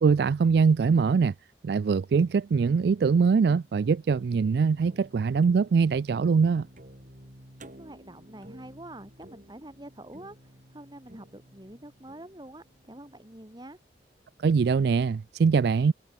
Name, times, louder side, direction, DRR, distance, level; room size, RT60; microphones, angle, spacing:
voice 1, 0.0-1.3 1.6-6.7 14.4-15.9, right 5 dB, 60° right, 0.3 m, -23 dB
sound 1, 2.5-13.7, equal, 45° right, 7.1 m, -52 dB
voice 2, 7.6-13.8, right 1 dB, 25° right, 2.5 m, -46 dB
head